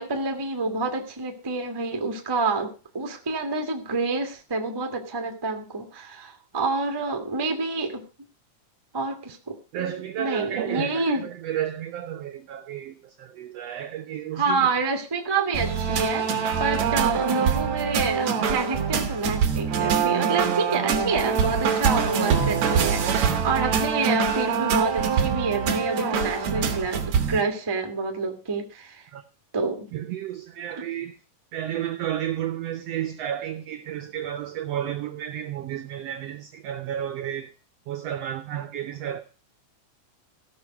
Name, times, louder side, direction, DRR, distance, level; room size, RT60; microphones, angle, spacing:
voice 1, 0.0-8.0 8.9-9.9 10.2-11.2 14.4-16.3 16.6-27.0 27.3-29.1 29.5-29.9, right 3 dB, 25° right, 0.5 m, -28 dB
voice 2, 9.7-14.7 16.7-16.9 17.4-17.5 29.1-29.2 29.9-31.2 31.5-37.5 37.9-39.2, right 11 dB, 85° right, 1.4 m, -32 dB
sound 1, 15.5-27.4, right 7 dB, 60° right, 2.7 m, -24 dB
15.5 x 6.2 x 5.9 m
omnidirectional pair, 3.8 m